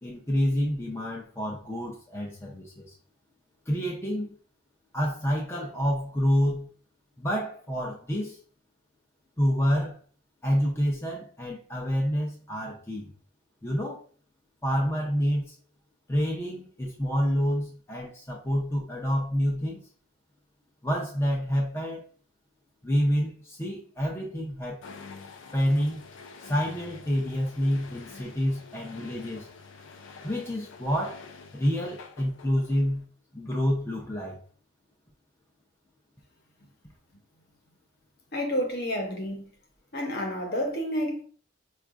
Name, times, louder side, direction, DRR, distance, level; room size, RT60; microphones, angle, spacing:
voice 1, 0.0-2.9 3.7-4.3 4.9-6.7 7.2-8.4 9.4-10.0 10.4-13.1 13.6-14.0 14.6-15.5 16.1-19.8 20.8-22.1 22.8-24.8 25.5-26.0 26.4-29.5 30.2-31.3 31.5-33.1 33.3-34.4, equal, 10° left, 0.5 m, -28 dB
sound 1, 24.8-33.0, left 4 dB, 65° left, 0.4 m, -47 dB
voice 2, 38.3-39.5 39.9-41.2, equal, 50° left, 0.9 m, -30 dB
4.7 x 2.4 x 2.4 m
head